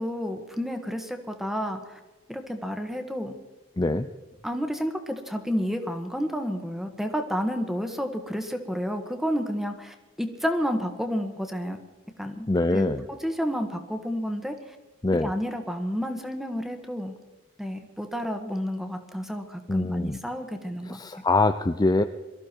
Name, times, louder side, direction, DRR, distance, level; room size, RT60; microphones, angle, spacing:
voice 1, 0.0-2.0 2.3-3.4 4.4-11.8 12.2-12.5 12.7-12.9 13.2-14.5 15.2-17.1 17.6-21.0, equal, ahead, 6 dB, 1.6 m, -30 dB
voice 2, 3.8-4.1 12.5-13.0 15.0-15.3 19.7-20.2 20.8-22.0, left 2 dB, 20° left, 8 dB, 0.5 m, -24 dB
23.0 x 14.0 x 4.6 m, 1.2 s
head